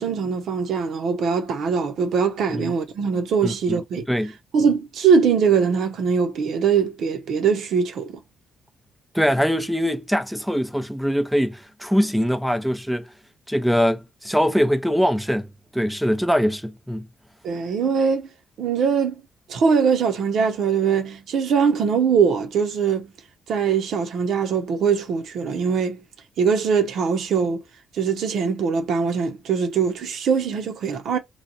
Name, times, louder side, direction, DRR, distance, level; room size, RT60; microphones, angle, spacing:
voice 1, 0.0-4.1 4.5-8.2 17.4-18.3 18.6-19.2 19.5-23.1 23.5-26.0 26.4-27.6 27.9-31.2, right 6 dB, 70° right, 0.9 m, -22 dB
voice 2, 3.4-3.8 4.1-4.3 9.1-13.0 13.5-17.1, equal, ahead, 0.5 m, -22 dB
3.1 x 2.3 x 4.0 m
cardioid pair, 90°, 0 cm